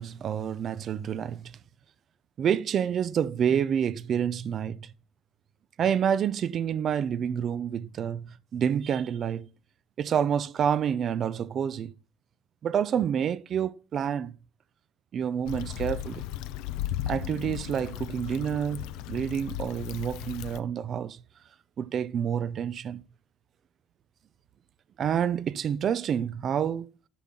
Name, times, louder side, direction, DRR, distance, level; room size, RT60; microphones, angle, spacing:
voice 1, 0.0-1.6 2.4-4.9 5.8-9.5 10.0-11.9 12.6-14.4 15.1-16.2 17.1-21.2 21.8-23.0 25.0-26.9, right 8 dB, 45° right, 0.5 m, -28 dB
Stream / Traffic noise roadway noise / Trickle dribble, 15.5-20.6, left 12 dB, 80° left, 0.6 m, -36 dB
12.0 x 5.7 x 3.7 m
cardioid pair, 105°, 0 cm